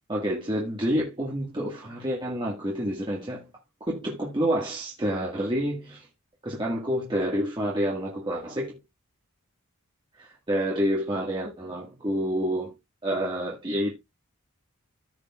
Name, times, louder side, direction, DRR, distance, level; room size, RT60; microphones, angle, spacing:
voice 1, 0.1-3.5 3.8-6.1 6.4-8.8 10.2-12.7 13.0-13.9, equal, 20° right, 1.8 m, -28 dB
14.5 x 5.2 x 2.4 m
head